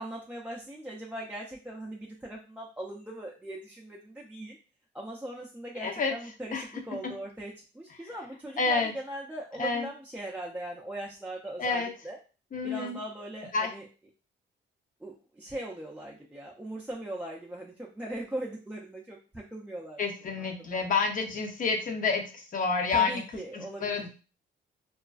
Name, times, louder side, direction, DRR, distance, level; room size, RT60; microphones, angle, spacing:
voice 1, 0.0-4.6 4.9-12.2 12.6-13.9 15.0-20.3 20.7-20.8 22.9-24.1, right 1 dB, 5° right, -3 dB, 0.4 m, -40 dB
voice 2, 5.8-6.1 6.5-6.6 8.6-8.9 9.6-9.9 11.6-11.9 12.5-13.0 13.5-13.7 20.0-22.2 22.5-23.2 23.5-24.1, left 4 dB, 45° left, 3 dB, 0.6 m, -28 dB
2.3 x 2.2 x 2.3 m, 0.35 s
cardioid pair, 90°, 20 cm